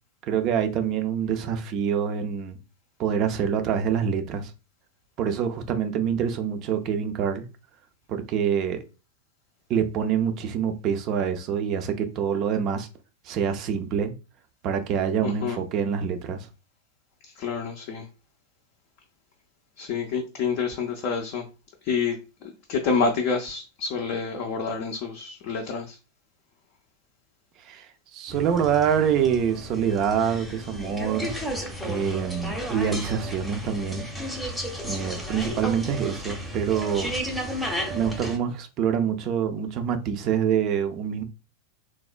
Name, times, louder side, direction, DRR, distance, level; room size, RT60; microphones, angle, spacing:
voice 1, 0.3-2.6 3.0-4.5 5.2-7.5 8.1-8.8 9.7-12.9 13.2-14.1 14.6-16.5 27.6-31.3 31.8-34.1 34.8-37.1 37.9-41.2, right 7 dB, 35° right, 0.4 m, -26 dB
voice 2, 15.2-15.6 17.4-18.1 19.8-21.4 21.8-22.2 22.4-26.0, left 5 dB, 45° left, 0.4 m, -28 dB
sound 1, 28.3-38.4, equal, ahead, 0.6 m, -33 dB
3.3 x 2.1 x 2.4 m
figure-of-eight pair, 90°, 0 cm